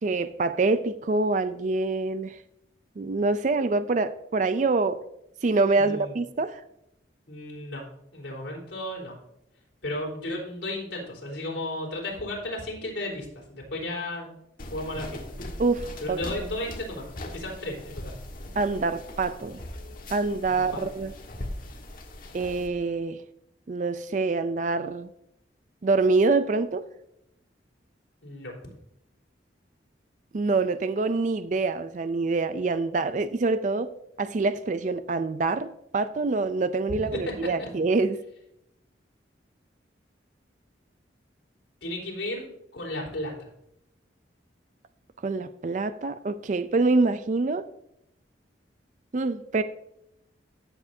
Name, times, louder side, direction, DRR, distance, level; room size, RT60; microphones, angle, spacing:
voice 1, 0.0-2.4 3.0-5.0 5.4-6.6 15.6-16.2 18.6-19.6 20.1-21.1 22.3-23.2 23.7-25.1 25.8-26.9 30.3-33.9 34.2-38.2 45.2-47.7 49.1-49.6, right 3 dB, 40° right, 12 dB, 0.4 m, -25 dB
voice 2, 5.7-6.1 7.3-7.8 8.1-9.2 9.8-14.4 14.7-15.2 16.0-18.2 20.5-20.8 28.2-28.5 36.9-37.7 41.8-43.5, left 1 dB, 75° left, -3 dB, 3.9 m, -34 dB
sound 1, 14.6-22.7, left 1 dB, 50° left, 1.5 m, -40 dB
15.0 x 7.3 x 2.7 m, 0.79 s
head